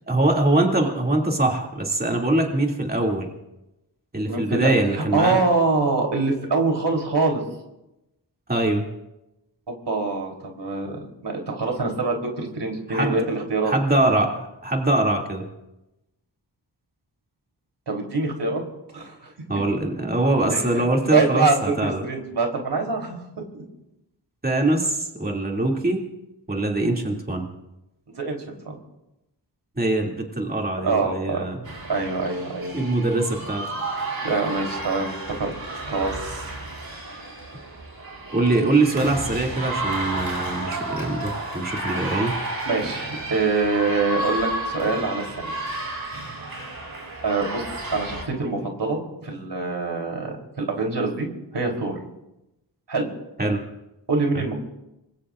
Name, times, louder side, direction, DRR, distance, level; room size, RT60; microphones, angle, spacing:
voice 1, 0.1-3.3 4.1-5.4 8.5-8.9 12.9-13.1 13.6-15.5 19.5-22.0 24.4-26.1 26.5-27.5 29.7-31.6 32.7-33.6 38.3-42.4 53.4-53.6 54.3-54.4, right 2 dB, 20° right, 0 dB, 2.6 m, -23 dB
voice 2, 4.3-7.4 9.7-13.7 17.9-18.6 18.9-19.3 20.5-23.2 23.5-23.6 28.2-28.4 28.7-28.8 30.8-31.5 31.9-32.8 34.2-35.5 35.8-36.5 42.6-45.5 47.2-47.6 47.9-51.3 51.5-52.0 52.9-53.1 54.1-54.5, right 3 dB, 75° right, 1 dB, 3.6 m, -25 dB
sound 1, 31.6-48.2, right 2 dB, 55° right, 5.9 m, -32 dB
26.0 x 21.0 x 2.6 m, 0.93 s
wide cardioid pair, 75°, 42 cm